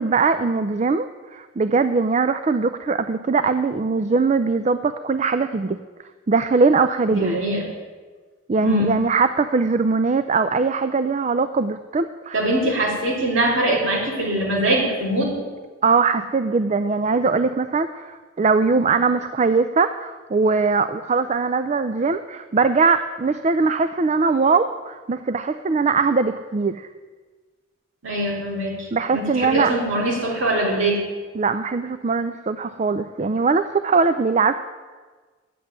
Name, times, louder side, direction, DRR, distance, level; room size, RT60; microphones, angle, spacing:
voice 1, 0.0-5.8 6.3-7.5 8.5-12.4 15.8-26.9 28.9-29.7 30.1-30.2 31.4-34.5, right 4 dB, 35° right, 11 dB, 0.4 m, -21 dB
voice 2, 7.1-7.7 8.6-9.0 12.3-15.3 28.0-28.9 29.1-31.0, right 1 dB, 75° right, -3 dB, 3.9 m, -22 dB
10.0 x 7.9 x 9.4 m, 1.4 s
head